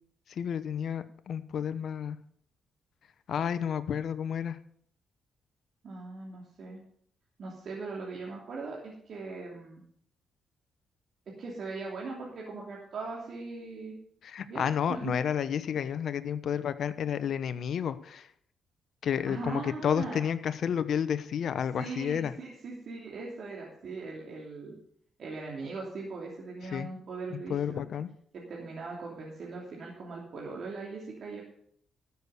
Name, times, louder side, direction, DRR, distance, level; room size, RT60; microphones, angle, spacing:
voice 1, 0.4-2.2 3.3-4.6 14.2-18.3 19.0-22.3 26.7-26.9 27.3-28.1, left 8 dB, 70° left, 12 dB, 0.9 m, -31 dB
voice 2, 5.8-6.8 7.4-9.8 11.4-13.9 14.5-14.6 14.9-15.1 19.3-20.3 21.8-24.8 25.2-27.8 28.3-31.4, right 3 dB, 65° right, -3 dB, 3.1 m, -40 dB
13.5 x 7.1 x 6.7 m, 0.64 s
supercardioid pair, 65°, 0 cm